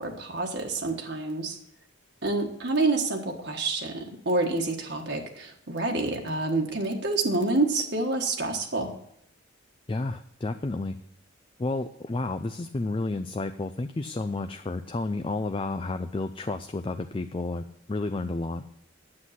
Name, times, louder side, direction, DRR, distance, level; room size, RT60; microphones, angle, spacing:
voice 1, 0.0-1.6 2.2-8.9, right 2 dB, 55° right, 2 dB, 1.4 m, -28 dB
voice 2, 9.9-11.0 11.6-18.6, left 2 dB, 25° left, 8 dB, 0.4 m, -31 dB
9.7 x 8.1 x 5.8 m, 0.71 s
head